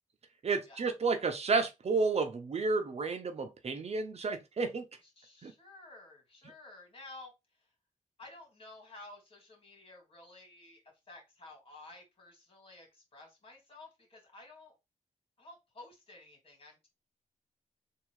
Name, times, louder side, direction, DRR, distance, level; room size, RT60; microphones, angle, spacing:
voice 1, 0.4-4.9 5.4-5.5, right 4 dB, 55° right, 0.9 m, -31 dB
voice 2, 5.0-7.3 8.2-10.8 11.1-14.8 15.4-16.9, left 2 dB, 45° left, 2.7 m, -53 dB
3.6 x 3.0 x 4.7 m
wide cardioid pair, 105°, 13 cm